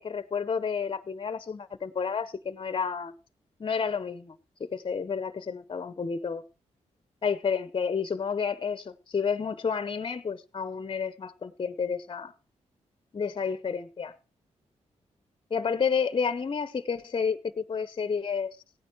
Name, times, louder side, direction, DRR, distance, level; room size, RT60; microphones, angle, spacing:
voice 1, 0.0-3.1 3.6-4.3 4.6-6.4 7.2-12.3 13.1-14.1 15.5-18.5, left 6 dB, 40° left, 0.9 m, -30 dB
16.5 x 9.3 x 4.6 m
cardioid pair, 75°, 13 cm